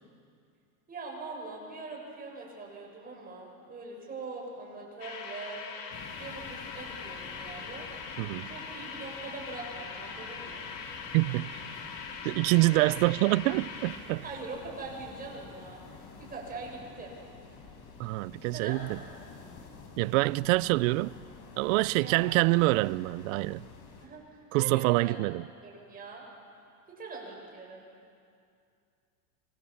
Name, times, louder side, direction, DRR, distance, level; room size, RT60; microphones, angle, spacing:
voice 1, 0.9-5.6 6.2-7.9 8.5-10.7 14.2-17.2 18.5-18.8 22.0-22.3 24.0-24.2 24.6-25.2 25.6-26.2 26.9-27.9, right 3 dB, 20° right, 6.4 m, -42 dB
sound 1, 5.0-14.0, left 5 dB, 80° left, 3.9 m, -41 dB
sound 2, 5.9-24.1, left 4 dB, 40° left, 4.2 m, -49 dB
voice 2, 8.2-8.5 11.1-11.6 12.2-14.2 18.0-19.0 20.0-21.2 21.6-23.6 24.5-25.4, right 22 dB, 55° right, 0.6 m, -26 dB
26.5 x 23.0 x 7.2 m
supercardioid pair, 135°, 47 cm